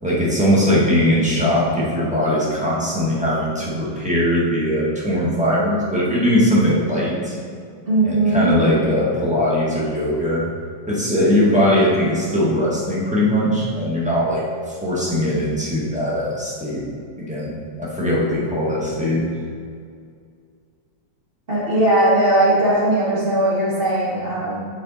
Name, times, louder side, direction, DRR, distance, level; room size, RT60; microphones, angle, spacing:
voice 1, 0.0-7.4 8.0-10.5 10.9-16.8 17.2-19.2, equal, 5° right, -7 dB, 1.2 m, -20 dB
voice 2, 7.9-8.5 21.5-24.6, right 1 dB, 35° right, -8 dB, 1.6 m, -18 dB
6.6 x 5.2 x 4.1 m, 2.2 s
omnidirectional pair, 1.9 m